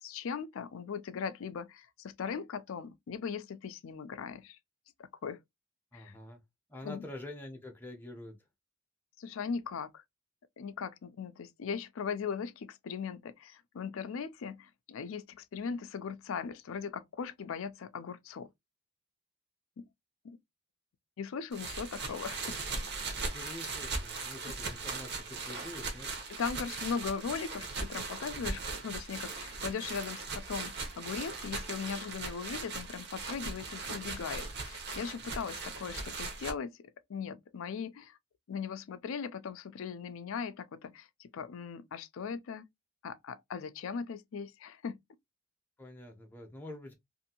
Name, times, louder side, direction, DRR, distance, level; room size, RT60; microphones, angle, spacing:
voice 1, 0.0-4.6 5.2-5.4 5.9-6.1 6.8-7.1 9.2-10.0 10.6-18.5 19.8-19.9 20.2-20.4 21.2-22.6 26.3-38.2 38.5-42.7 43.0-45.0, left 6 dB, 65° left, 0.4 m, -39 dB
voice 2, 5.9-6.4 6.7-8.4 23.3-26.1 45.8-46.9, left 1 dB, 10° left, 0.6 m, -46 dB
sound 1, 21.5-36.5, right 3 dB, 50° right, 0.8 m, -39 dB
2.6 x 2.5 x 2.7 m
head